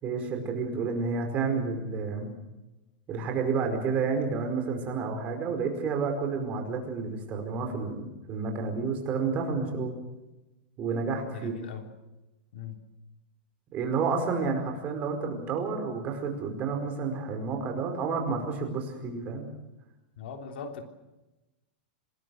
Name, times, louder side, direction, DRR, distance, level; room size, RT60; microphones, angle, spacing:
voice 1, 0.0-2.3 3.1-9.9 10.8-11.6 13.7-19.5, right 4 dB, 25° right, 4 dB, 5.0 m, -30 dB
voice 2, 11.3-11.9 12.5-12.8 20.2-20.8, left 6 dB, 70° left, 5 dB, 3.3 m, -40 dB
27.0 x 20.0 x 6.4 m, 1.0 s
supercardioid pair, 165°, 6 cm